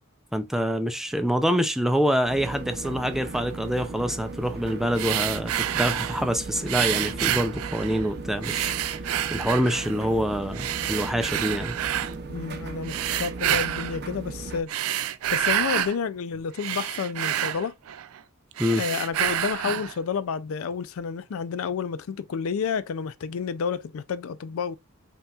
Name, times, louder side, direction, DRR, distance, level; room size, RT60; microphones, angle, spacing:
voice 1, 0.3-8.7 9.3-11.8 18.6-18.8, equal, ahead, 0.4 m, -26 dB
sound 1, 2.3-14.6, right 3 dB, 50° right, 0.7 m, -37 dB
sound 2, 4.9-6.3 6.7-8.1 8.4-10.0 10.5-12.1 12.8-14.0 14.6-16.0 16.4-18.2 18.5-20.0, right 11 dB, 90° right, 0.4 m, -28 dB
voice 2, 12.3-14.7 15.3-17.7 18.7-24.8, left 6 dB, 75° left, 0.4 m, -30 dB
5.5 x 3.0 x 2.3 m
head